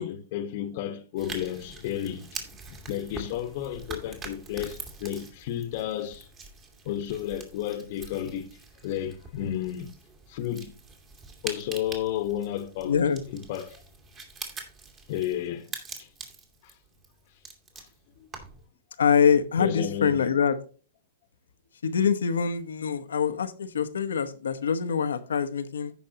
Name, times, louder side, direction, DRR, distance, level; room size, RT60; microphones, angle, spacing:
voice 1, 0.0-6.3 6.8-8.6 8.8-9.9 10.3-10.7 11.4-13.0 13.3-13.8 15.1-15.7 16.0-16.1 16.6-16.7 17.8-17.9 18.2-18.3 19.6-20.3, left 11 dB, 55° left, 1.2 m, -32 dB
sound 1, 1.2-18.7, right 4 dB, 25° right, 2.2 m, -44 dB
voice 2, 12.8-13.2 19.0-20.5 21.8-25.9, left 7 dB, 85° left, 1.0 m, -24 dB
15.5 x 5.4 x 2.9 m
hypercardioid pair, 125°, 0 cm